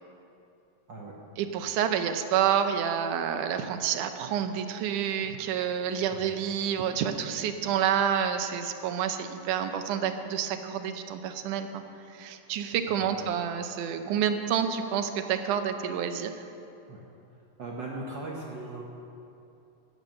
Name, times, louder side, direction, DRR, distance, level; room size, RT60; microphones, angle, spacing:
voice 1, 1.4-11.8 12.1-16.3, right 8 dB, 85° right, 8 dB, 2.3 m, -28 dB
voice 2, 12.9-13.3 16.9-17.0 17.6-18.8, right 2 dB, 60° right, -2 dB, 1.2 m, -39 dB
15.0 x 7.7 x 6.4 m, 2.8 s
omnidirectional pair, 3.5 m